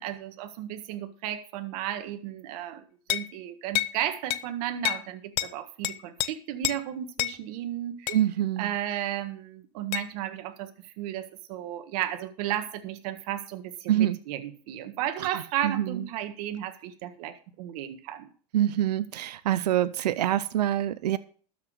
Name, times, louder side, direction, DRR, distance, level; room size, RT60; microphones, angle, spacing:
voice 1, 0.0-8.2 8.6-18.3, right 11 dB, 65° right, 9 dB, 1.7 m, -34 dB
sound 1, 3.1-3.3 3.7-4.0 4.3-4.5 4.8-5.1 5.4-5.5 5.8-6.3 6.6-6.8 7.2-7.4 8.1-8.2 9.9-10.1, left 17 dB, 55° left, 0.7 m, -28 dB
voice 2, 8.1-8.7 13.9-14.2 15.6-15.7 18.5-21.2, right 12 dB, 85° right, 15 dB, 0.7 m, -25 dB
12.5 x 6.2 x 6.2 m, 0.43 s
hypercardioid pair, 100°, 20 cm